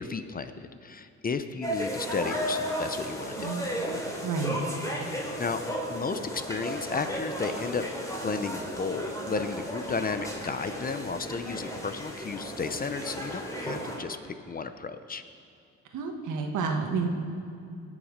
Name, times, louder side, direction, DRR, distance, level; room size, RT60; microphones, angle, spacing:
voice 1, 0.0-3.6 5.4-5.6 5.9-7.9 8.2-15.2, left 4 dB, 30° left, 10 dB, 0.7 m, -33 dB
sound 1, 1.6-14.0, equal, 10° left, 3.1 m, -34 dB
voice 2, 3.4-3.8 4.2-4.6 15.9-17.1, right 5 dB, 80° right, 3 dB, 1.5 m, -30 dB
19.0 x 7.3 x 5.1 m, 2.5 s
cardioid pair, 90°, 30 cm